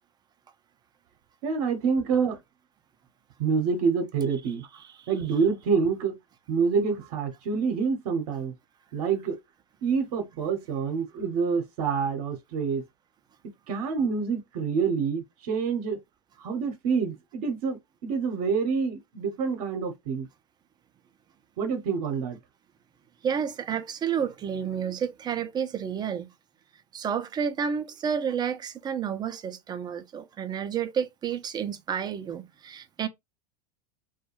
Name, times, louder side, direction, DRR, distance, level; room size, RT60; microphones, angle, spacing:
voice 1, 1.4-2.4 3.4-4.7 5.1-6.1 6.5-8.5 8.9-9.4 9.8-12.8 13.7-16.0 16.4-20.3 21.6-22.4, right 5 dB, 60° right, 0.8 m, -27 dB
voice 2, 23.2-26.3 26.9-33.1, right 7 dB, 20° right, 0.4 m, -30 dB
2.2 x 2.2 x 3.0 m
hypercardioid pair, 90°, 20 cm